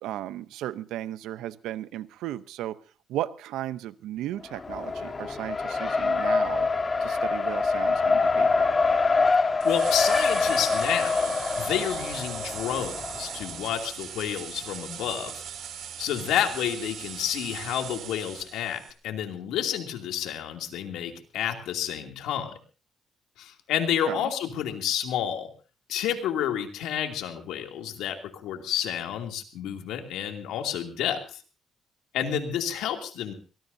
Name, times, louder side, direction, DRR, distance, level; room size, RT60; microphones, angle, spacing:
voice 1, 0.0-2.8 3.1-6.7 7.0-8.7 24.1-24.3, right 13 dB, 90° right, 15 dB, 0.7 m, -35 dB
Race car auto racing, 4.4-13.5, left 4 dB, 30° left, 1.6 m, -25 dB
voice 2, 9.6-15.4 16.0-22.5 23.4-25.5 25.9-31.4 32.1-33.3, left 9 dB, 90° left, 4 dB, 2.7 m, -30 dB
sound 1, 9.6-18.9, right 8 dB, 70° right, 3.1 m, -39 dB
23.0 x 20.0 x 2.8 m, 0.35 s
cardioid pair, 90°, 0 cm